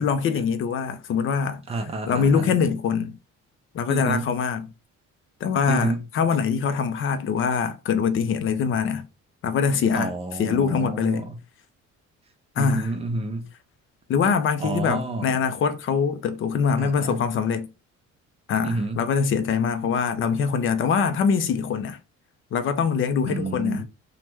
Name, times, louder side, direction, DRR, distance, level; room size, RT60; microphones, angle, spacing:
voice 1, 0.0-1.6 2.1-3.2 3.7-4.7 5.4-9.1 9.4-10.1 10.4-11.3 12.6-12.9 14.1-17.7 18.5-22.0 22.5-23.8, left 6 dB, 45° left, 0.4 m, -23 dB
voice 2, 1.7-2.5 3.9-4.3 5.7-6.1 9.9-11.4 12.6-13.5 14.6-15.3 16.8-17.3 18.6-19.1 23.3-23.8, right 3 dB, 20° right, 0.4 m, -29 dB
3.0 x 2.1 x 3.3 m
cardioid pair, 160°, 30 cm